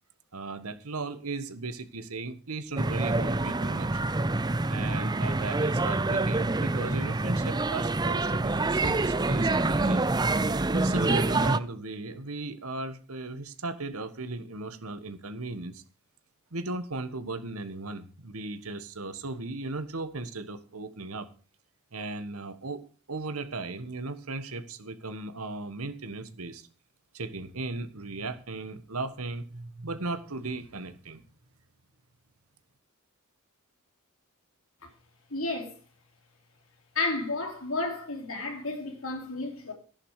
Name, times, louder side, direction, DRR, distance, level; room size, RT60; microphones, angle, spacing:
voice 1, 0.3-4.0 4.7-10.1 10.7-15.8 16.5-21.3 21.9-22.8 23.1-26.7 27.1-31.2, right 3 dB, 85° right, 1.5 m, -36 dB
sound 1, 2.8-11.6, right 2 dB, 20° right, 0.6 m, -26 dB
voice 2, 35.3-35.8 37.0-39.7, left 3 dB, 70° left, 3.5 m, -32 dB
15.0 x 11.0 x 4.9 m
head